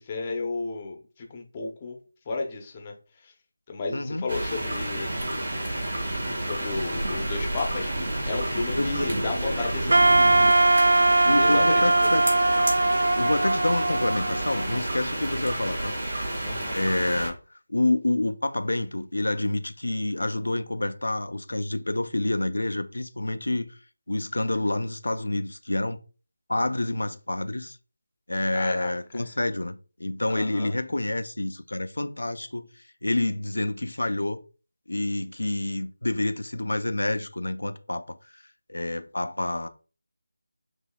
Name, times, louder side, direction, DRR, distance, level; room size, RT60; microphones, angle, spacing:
voice 1, 0.0-2.0 2.3-2.9 3.2-3.3 3.7-5.1 6.4-7.9 8.3-10.1 11.4-12.1 16.4-16.8 28.5-28.9 30.3-30.8, left 3 dB, 20° left, 0.8 m, -33 dB
voice 2, 3.9-4.3 8.8-9.1 11.2-12.2 13.1-16.0 16.7-17.4 17.7-23.7 24.1-26.0 26.5-27.8 28.3-32.7 33.0-34.4 34.9-38.4 38.7-39.7, left 2 dB, 85° left, 0.5 m, -28 dB
sound 1, 4.3-17.3, right 1 dB, 55° right, 1.6 m, -30 dB
Wind instrument woodwind instrument, 9.9-14.9, right 2 dB, 75° right, 0.3 m, -21 dB
6.0 x 2.7 x 2.3 m
figure-of-eight pair, 170°, 0 cm